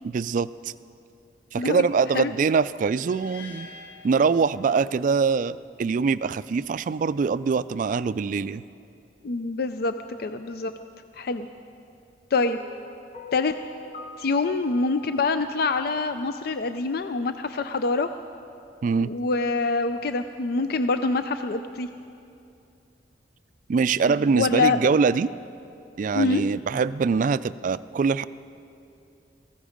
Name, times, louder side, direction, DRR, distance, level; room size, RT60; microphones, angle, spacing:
voice 1, 0.0-0.7 1.5-3.7 4.0-8.6 18.8-19.1 23.7-25.3 26.0-28.3, right 5 dB, 45° right, 16 dB, 0.3 m, -23 dB
sound 1, 3.0-5.1, left 3 dB, 80° left, 1.8 m, -46 dB
voice 2, 9.2-9.9 10.2-10.7 11.1-11.5 12.3-12.6 13.3-13.5 14.2-18.1 19.0-21.9 24.2-24.9 26.1-26.4, left 3 dB, 60° left, 9 dB, 0.4 m, -25 dB
sound 2, 12.3-16.7, left 1 dB, 40° left, 1.3 m, -45 dB
18.5 x 15.5 x 5.1 m, 2.6 s
head